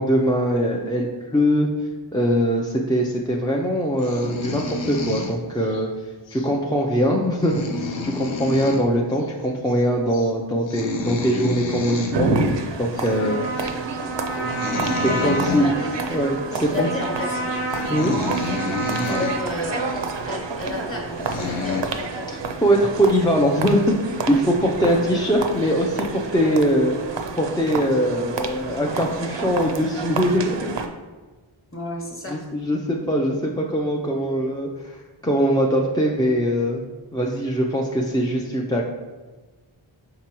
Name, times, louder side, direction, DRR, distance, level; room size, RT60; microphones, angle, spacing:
voice 1, 0.0-1.7 2.1-5.9 6.3-7.6 8.0-13.4 15.0-15.7 16.1-16.9 17.9-18.2 22.6-30.7 32.3-34.9 35.2-36.8 37.1-38.8, equal, 10° left, -2 dB, 0.4 m, -22 dB
sound 1, 4.0-5.8 6.3-6.5 6.9-7.0 7.3-8.9 9.1-9.3 9.6-9.8 10.1-10.3 10.6-12.2 13.0-13.1 13.6-13.8 14.3-16.0 16.6-16.8 17.4-17.5 17.7-19.4 19.9-20.0 20.7-20.8 21.1-21.8, left 4 dB, 65° left, 0.6 m, -30 dB
sound 2, 12.1-30.9, right 4 dB, 65° right, 0.5 m, -29 dB
Trumpet, 13.0-20.2, right 2 dB, 85° left, 1.1 m, -30 dB
voice 2, 15.2-15.9 16.5-17.5 19.0-19.9 20.2-22.3 24.8-25.0 31.7-32.5, left 2 dB, 25° left, -1 dB, 1.1 m, -31 dB
4.7 x 3.8 x 2.9 m, 1.2 s
wide cardioid pair, 55°, 49 cm